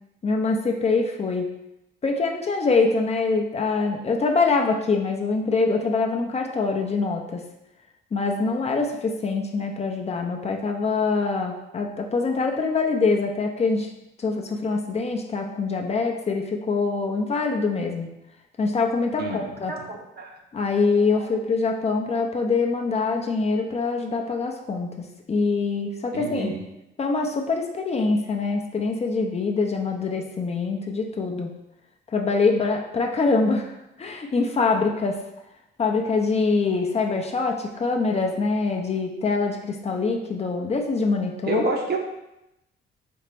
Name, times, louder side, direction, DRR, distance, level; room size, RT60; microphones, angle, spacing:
voice 1, 0.2-1.5 2.0-7.4 8.1-13.9 14.2-18.1 18.6-19.7 20.5-26.5 27.0-31.5 32.1-35.2 35.8-41.6, left 4 dB, 30° left, 2 dB, 0.5 m, -24 dB
voice 2, 19.2-20.4 21.1-21.3 26.1-26.6 41.4-42.0, right 2 dB, 55° right, 1 dB, 0.9 m, -29 dB
4.2 x 2.9 x 3.3 m, 0.88 s
cardioid pair, 90°, 20 cm